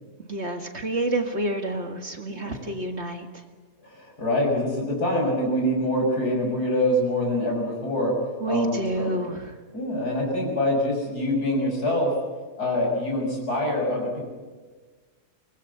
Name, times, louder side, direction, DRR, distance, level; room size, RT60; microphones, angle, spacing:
voice 1, 0.2-3.4 8.4-9.6, right 2 dB, 45° right, 5 dB, 2.2 m, -29 dB
voice 2, 3.8-8.2 8.5-9.1 9.7-12.2 12.6-14.2, left 1 dB, 75° left, 0 dB, 7.4 m, -25 dB
24.5 x 20.5 x 7.1 m, 1.4 s
omnidirectional pair, 1.7 m